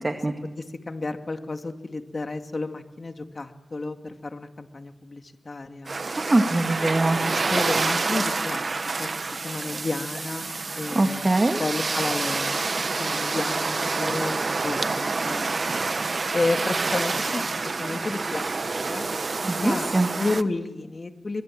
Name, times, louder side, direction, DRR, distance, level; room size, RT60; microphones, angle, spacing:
voice 1, 0.0-0.3 6.2-7.2 10.9-11.6 19.4-20.1, right 2 dB, 35° right, 5 dB, 2.0 m, -22 dB
voice 2, 0.6-6.0 7.3-8.6 9.0-9.1 9.4-10.5 10.8-11.3 11.5-12.6 13.0-15.5 16.3-17.4 17.8-18.5 18.9-19.1 19.6-19.9 20.2-21.4, left 3 dB, 50° left, 6 dB, 2.2 m, -31 dB
sound 1, 5.9-20.4, right 3 dB, 60° right, 1.0 m, -28 dB
24.0 x 21.5 x 7.6 m, 1.1 s
cardioid pair, 55°, 0 cm